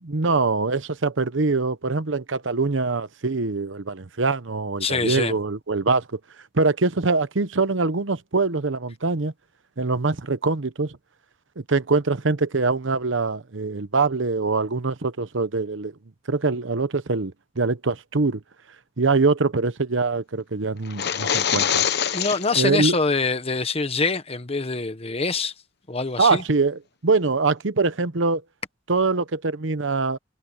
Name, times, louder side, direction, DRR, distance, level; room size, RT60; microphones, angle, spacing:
voice 1, 0.0-6.2 6.5-9.3 9.8-11.0 11.6-15.9 16.3-18.4 19.0-21.8 22.6-23.0 26.2-28.4 28.9-30.2, right 3 dB, 75° right, 1.0 m, -23 dB
voice 2, 4.8-5.3 22.1-25.5 25.9-26.4, left 4 dB, 30° left, 1.2 m, -24 dB
sound 1, 20.8-22.6, left 8 dB, 60° left, 1.0 m, -24 dB
head